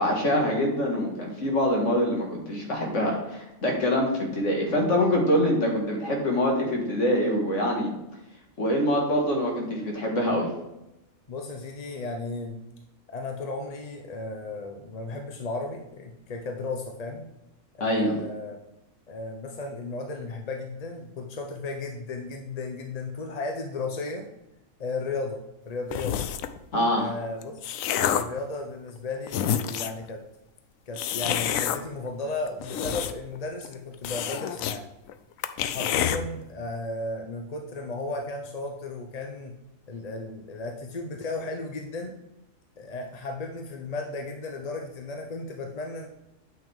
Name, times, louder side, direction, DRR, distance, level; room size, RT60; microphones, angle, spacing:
voice 1, 0.0-7.9 8.6-10.5 17.8-18.1 26.7-27.1, equal, 65° left, 0 dB, 2.2 m, -25 dB
voice 2, 11.3-12.6 13.1-17.3 17.7-18.6 19.1-24.3 24.8-25.4 25.7-26.2 26.9-27.6 27.9-30.2 30.9-34.8 35.6-39.5 39.9-42.1 42.8-46.1, left 3 dB, 40° left, 3 dB, 0.6 m, -34 dB
sound 1, 25.9-26.6 27.2-28.4 29.0-29.1 29.3-30.0 31.0-31.8 32.5-33.4 33.6-33.7 34.0-34.8 35.1-35.2 35.4-36.2, left 10 dB, 90° left, 1.0 m, -28 dB
8.9 x 5.7 x 3.5 m, 0.92 s
omnidirectional pair, 1.4 m